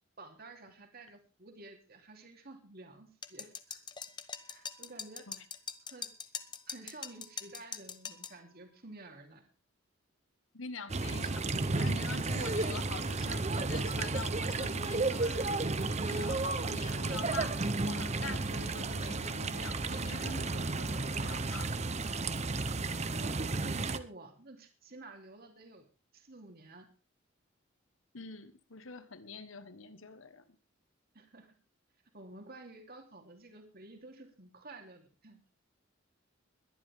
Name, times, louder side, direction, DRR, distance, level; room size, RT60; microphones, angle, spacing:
voice 1, 0.2-3.8 4.5-5.3 5.8-6.3 6.7-9.5 16.1-16.4 22.3-22.6 23.0-25.9 26.1-26.9 31.1-31.6 32.1-35.4, right 2 dB, 50° right, 2.9 m, -51 dB
sound 1, 3.2-8.4, left 6 dB, 20° left, 0.9 m, -42 dB
voice 2, 10.5-15.7 16.0-21.7 28.1-30.4, left 4 dB, 80° left, 1.4 m, -45 dB
sound 2, 10.9-24.0, right 3 dB, 35° right, 0.9 m, -33 dB
21.0 x 11.0 x 3.6 m
head